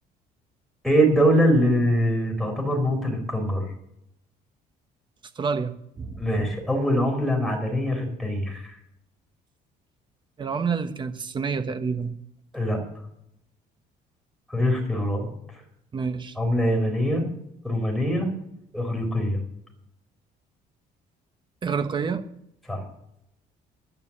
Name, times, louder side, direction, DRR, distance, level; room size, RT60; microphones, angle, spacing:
voice 1, 0.8-3.6 6.2-8.8 12.5-12.8 14.5-15.3 16.4-17.2 17.6-18.3 18.7-19.4 22.7-22.8, equal, ahead, 2 dB, 4.0 m, -23 dB
voice 2, 5.4-6.2 10.4-12.1 15.9-16.3 21.6-22.2, right 5 dB, 30° right, 9 dB, 1.1 m, -28 dB
11.0 x 9.8 x 7.3 m, 0.77 s
cardioid pair, 135°, 17 cm